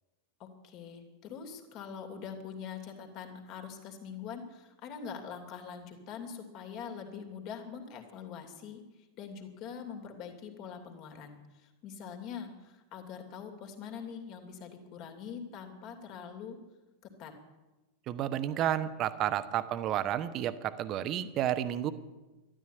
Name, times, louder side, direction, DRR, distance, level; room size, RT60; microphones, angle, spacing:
voice 1, 0.4-8.8 9.2-16.6 17.2-17.3, left 7 dB, 40° left, 4 dB, 2.8 m, -43 dB
voice 2, 18.1-21.9, right 11 dB, 35° right, 12 dB, 1.0 m, -31 dB
13.0 x 12.0 x 9.2 m, 1.1 s
figure-of-eight pair, 90°, 0 cm